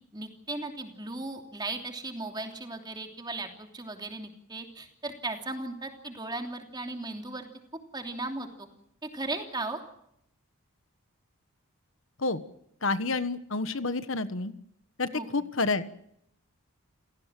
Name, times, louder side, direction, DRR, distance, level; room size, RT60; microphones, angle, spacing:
voice 1, 0.1-7.5 7.9-8.7 9.0-9.8 15.1-15.3, right 2 dB, 20° right, 4 dB, 3.0 m, -36 dB
voice 2, 12.8-14.5 15.0-15.9, left 3 dB, 65° left, 12 dB, 1.3 m, -29 dB
29.0 x 17.0 x 7.6 m, 0.76 s
head